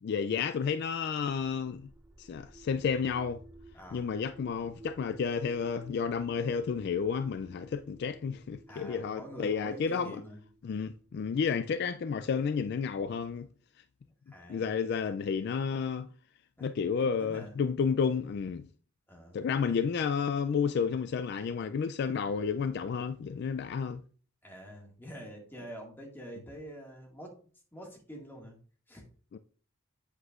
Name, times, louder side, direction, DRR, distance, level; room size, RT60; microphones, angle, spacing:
voice 1, 0.0-1.9 2.2-3.4 3.9-10.2 10.6-13.5 14.5-16.1 16.6-18.7 19.3-24.0 29.3-29.4, left 6 dB, 50° left, 0.3 m, -31 dB
sound 1, 1.2-13.0, right 1 dB, 10° right, 0.6 m, -55 dB
voice 2, 3.7-4.1 8.7-10.4 14.3-14.7 16.6-16.7 17.0-17.5 19.1-19.4 24.4-27.4 27.7-28.6 28.9-29.0, equal, 10° left, 1.8 m, -46 dB
8.0 x 7.8 x 2.4 m
head